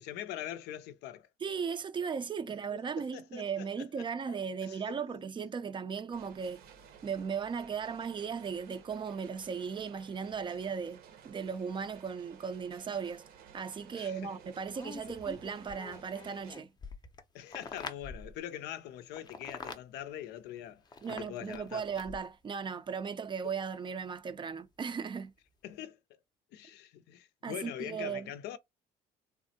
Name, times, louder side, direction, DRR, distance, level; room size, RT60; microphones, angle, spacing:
voice 1, 0.0-1.3 2.4-5.2 13.9-14.3 17.3-21.9 23.4-23.5 25.6-26.0 26.5-28.6, left 11 dB, 80° left, 0.5 m, -43 dB
voice 2, 1.4-6.6 7.0-13.2 13.5-16.7 21.0-25.3 27.4-28.3, right 6 dB, 30° right, 0.4 m, -37 dB
sound 1, 6.1-16.5, right 8 dB, 65° right, 0.7 m, -56 dB
sound 2, 14.6-18.4 19.1-19.8 20.9-22.3 23.7-23.8, left 4 dB, 25° left, 0.5 m, -46 dB
3.4 x 2.0 x 2.7 m
cardioid pair, 110°, 17 cm